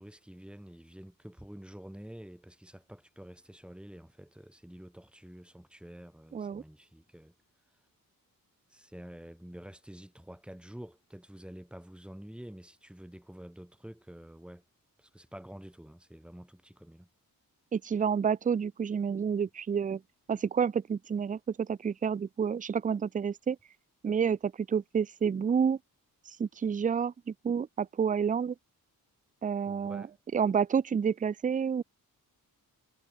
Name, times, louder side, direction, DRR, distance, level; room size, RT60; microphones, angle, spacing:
voice 1, 0.0-7.3 8.7-14.6 15.0-17.1 29.7-30.1, equal, 5° right, 4.8 m, -48 dB
voice 2, 6.3-6.6 17.7-20.0 20.3-23.6 24.0-25.8 26.3-28.5 29.4-30.1 30.3-31.8, right 7 dB, 25° right, 0.4 m, -29 dB
wide cardioid pair, 175°, 36 cm